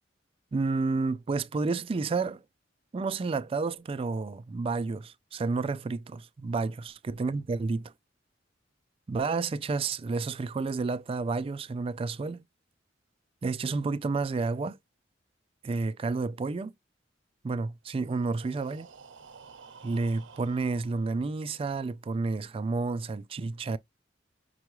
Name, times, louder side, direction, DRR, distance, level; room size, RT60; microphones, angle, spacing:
voice 1, 0.5-2.4 2.9-7.9 9.1-12.4 13.4-14.8 15.6-16.7 17.4-18.9 19.8-23.8, right 3 dB, 30° right, 0.3 m, -30 dB
Breathing, 17.9-21.7, right 5 dB, 80° right, 0.7 m, -52 dB
5.5 x 2.2 x 3.0 m
head